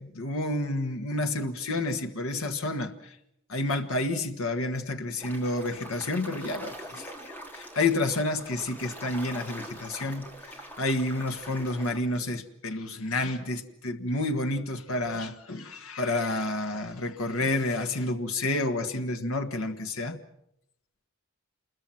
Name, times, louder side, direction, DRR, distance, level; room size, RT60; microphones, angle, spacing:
voice 1, 0.0-3.1 3.5-20.2, left 2 dB, 75° left, 7 dB, 1.6 m, -30 dB
sound 1, 5.2-12.0, right 1 dB, 10° left, 3.2 m, -43 dB
27.5 x 22.0 x 5.9 m, 0.79 s
head